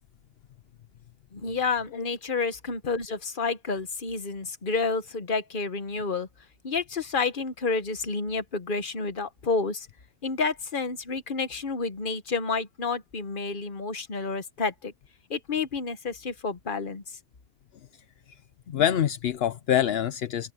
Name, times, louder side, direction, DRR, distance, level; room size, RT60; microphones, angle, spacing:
voice 1, 1.3-6.3 6.6-9.9 10.2-14.9 15.3-17.0, left 4 dB, 55° left, 1.4 m, -30 dB
voice 2, 18.7-20.5, left 10 dB, 75° left, 0.9 m, -25 dB
omnidirectional pair, 1.1 m